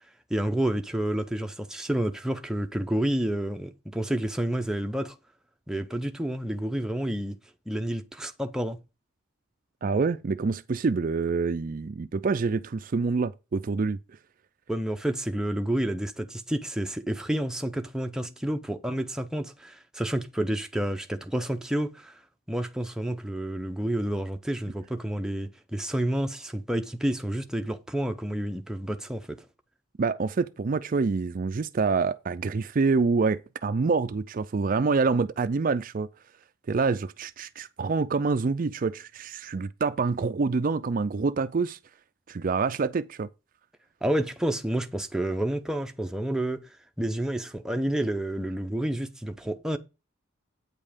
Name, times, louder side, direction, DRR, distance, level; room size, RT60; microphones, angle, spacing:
voice 1, 0.3-5.1 5.7-7.4 7.7-8.8 14.7-22.2 22.5-29.4 44.0-46.6 47.0-49.8, right 1 dB, 5° right, 0.7 m, -29 dB
voice 2, 9.8-14.0 30.0-36.1 36.7-41.8 42.3-43.3, right 4 dB, 45° right, 0.4 m, -26 dB
9.0 x 5.4 x 5.1 m
head